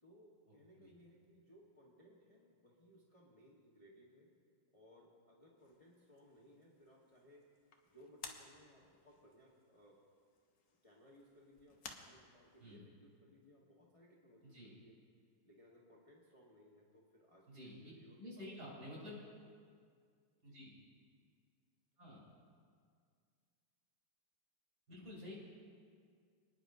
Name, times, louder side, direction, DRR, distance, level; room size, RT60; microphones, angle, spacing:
voice 1, 0.0-4.3 4.7-7.4 7.9-10.0 10.8-14.9 15.4-18.9 20.5-20.6, equal, 20° left, -4 dB, 1.1 m, -64 dB
sound 1, 5.6-12.8, left 5 dB, 55° left, 1.1 m, -58 dB
voice 2, 18.2-19.2 20.4-20.7 22.0-22.2 24.9-25.4, left 1 dB, 50° right, -6 dB, 4.8 m, -50 dB
28.0 x 10.0 x 2.7 m, 2.1 s
omnidirectional pair, 2.3 m